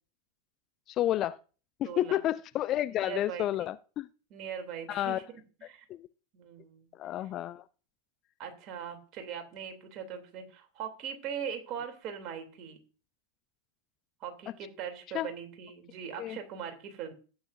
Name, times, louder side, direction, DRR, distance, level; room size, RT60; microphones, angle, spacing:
voice 1, 0.9-1.4 1.8-4.1 4.9-5.2 5.9-6.1 6.9-7.6 15.1-15.3 16.2-16.4, left 13 dB, 35° left, 0.4 m, -30 dB
voice 2, 1.8-2.2 2.9-3.7 4.3-5.2 5.6-5.8 6.3-6.9 8.4-12.8 14.2-17.1, right 8 dB, 35° right, 3.2 m, -40 dB
15.0 x 9.6 x 2.7 m
figure-of-eight pair, 90°, 0 cm